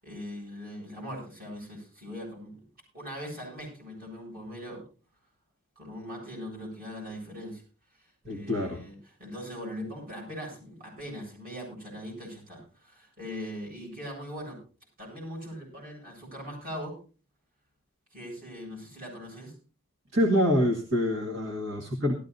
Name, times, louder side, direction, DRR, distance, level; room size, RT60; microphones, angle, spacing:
voice 1, 0.0-2.6 2.9-4.8 5.8-7.6 8.2-14.6 15.0-17.0 18.1-19.5 22.0-22.1, equal, 40° right, -2 dB, 7.8 m, -40 dB
voice 2, 8.3-8.8 20.1-22.1, equal, 60° right, 1 dB, 1.9 m, -26 dB
18.0 x 14.0 x 2.7 m, 0.35 s
head